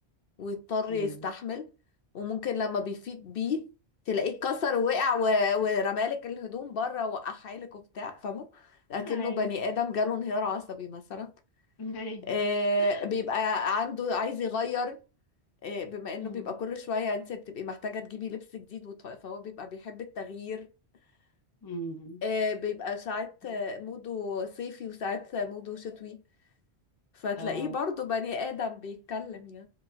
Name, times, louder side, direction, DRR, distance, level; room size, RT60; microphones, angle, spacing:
voice 1, 0.4-1.7 2.1-3.7 4.1-11.3 12.3-15.0 15.6-20.7 22.2-26.2 27.2-29.7, left 4 dB, 65° left, 0.8 m, -31 dB
voice 2, 0.9-1.3 9.0-9.5 11.8-12.3 12.8-13.0 16.2-16.6 21.6-22.2 23.4-23.6 27.4-27.8, equal, 25° left, 0.6 m, -39 dB
4.8 x 3.1 x 2.5 m
omnidirectional pair, 1.1 m